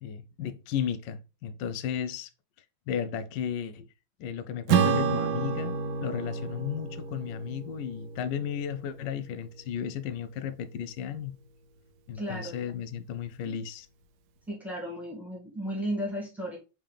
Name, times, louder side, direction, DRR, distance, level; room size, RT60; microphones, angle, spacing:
voice 1, 0.0-2.3 2.9-3.9 4.2-11.4 12.1-13.9, left 8 dB, 75° left, 1.1 m, -34 dB
Acoustic guitar / Strum, 4.7-9.4, right 6 dB, 75° right, 1.1 m, -29 dB
voice 2, 12.1-12.6 14.5-16.6, equal, ahead, 1.7 m, -34 dB
4.5 x 3.5 x 3.3 m
omnidirectional pair, 2.3 m